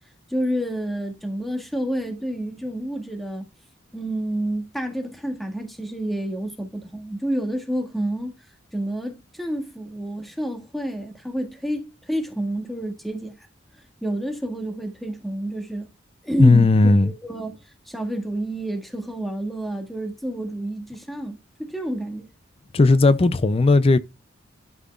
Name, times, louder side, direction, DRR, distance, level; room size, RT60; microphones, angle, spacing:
voice 1, 0.3-3.5 3.9-8.3 8.7-13.3 14.0-15.9 16.2-17.6 17.9-22.3, right 1 dB, ahead, 1.7 m, -29 dB
voice 2, 16.4-17.1 22.7-24.0, left 3 dB, 30° left, 0.4 m, -16 dB
12.0 x 5.7 x 2.4 m
head